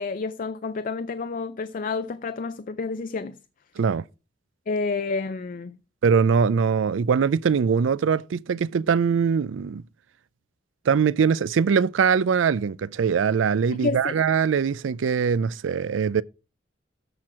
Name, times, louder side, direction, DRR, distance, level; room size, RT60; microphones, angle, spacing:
voice 1, 0.0-3.4 4.7-5.8 13.8-14.1, left 4 dB, 45° left, 0.4 m, -29 dB
voice 2, 3.8-4.1 6.0-9.8 10.9-16.2, right 6 dB, 85° right, 0.4 m, -22 dB
13.5 x 4.5 x 4.7 m
head